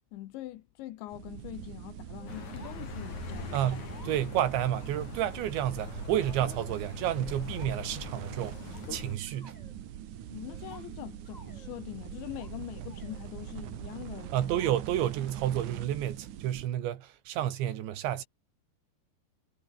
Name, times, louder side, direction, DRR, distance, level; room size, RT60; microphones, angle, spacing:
voice 1, 0.1-3.7 10.3-14.4, left 15 dB, 85° left, 3.6 m, -43 dB
sound 1, 1.1-16.7, right 11 dB, 60° right, 2.4 m, -43 dB
sound 2, 2.2-2.8 3.1-3.2 3.5-4.5 5.4-6.4 7.2-7.7 8.5-9.7 10.4-11.7 12.1-12.5 12.9-13.2 14.2-14.7, left 1 dB, 10° left, 7.0 m, -57 dB
Accelerating revving vroom, 2.3-9.2, left 6 dB, 45° left, 4.5 m, -42 dB
voice 2, 3.5-9.5 14.3-18.3, right 11 dB, 80° right, 4.4 m, -30 dB
omnidirectional pair, 5.1 m